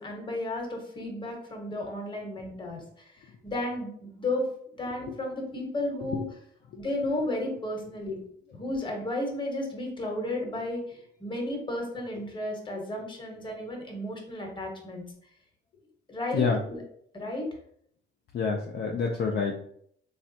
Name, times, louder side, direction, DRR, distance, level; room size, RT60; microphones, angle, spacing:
voice 1, 0.0-3.1 3.4-4.5 4.8-6.2 6.7-8.2 8.5-15.0 16.1-16.8 17.1-17.5, left 1 dB, 25° left, 1 dB, 0.9 m, -33 dB
voice 2, 18.3-19.6, left 5 dB, 55° left, 0 dB, 0.5 m, -27 dB
3.3 x 2.4 x 2.7 m, 0.64 s
cardioid pair, 90°, 20 cm